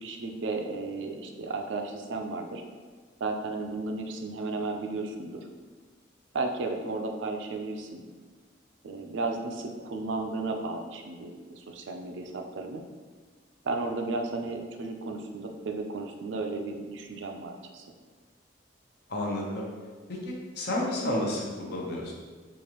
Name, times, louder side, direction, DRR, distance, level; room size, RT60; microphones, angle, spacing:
voice 1, 0.0-2.6 3.2-5.4 6.3-8.0 8.8-12.8 13.6-17.8, right 3 dB, 70° right, 4 dB, 0.4 m, -34 dB
voice 2, 19.1-19.6 20.1-22.1, left 1 dB, 55° left, -2 dB, 0.8 m, -31 dB
4.7 x 2.5 x 3.0 m, 1.5 s
head